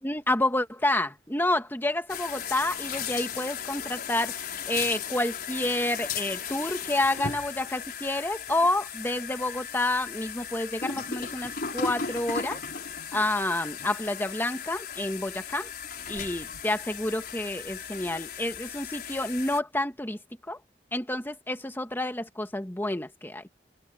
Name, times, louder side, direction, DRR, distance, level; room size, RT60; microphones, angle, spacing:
voice 1, 0.0-12.6 13.1-15.7 16.1-20.2 20.5-20.6 20.9-23.5, left 1 dB, 10° left, 1.7 m, -29 dB
sound 1, 2.1-19.6, left 6 dB, 60° left, 4.9 m, -36 dB
head